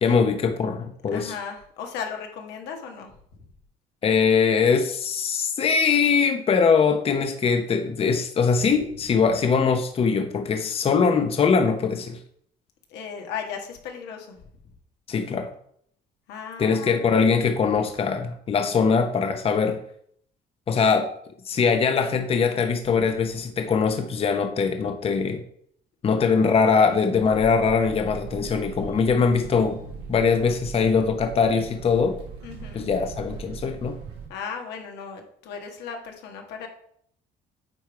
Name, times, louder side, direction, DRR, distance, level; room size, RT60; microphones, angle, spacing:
voice 1, 0.0-1.3 4.0-12.2 15.1-15.5 16.6-19.8 20.7-21.1 21.5-25.4 26.0-29.8 30.1-32.2 32.7-34.0, left 5 dB, 35° left, 7 dB, 0.7 m, -22 dB
voice 2, 1.1-3.1 12.9-14.4 16.3-17.3 26.2-26.3 29.4-29.7 32.4-32.9 34.3-36.7, left 6 dB, 85° left, 3 dB, 1.5 m, -36 dB
sound 1, 27.2-34.3, right 6 dB, 85° right, 1.7 m, -40 dB
9.0 x 3.5 x 4.6 m, 0.66 s
cardioid pair, 110°, 17 cm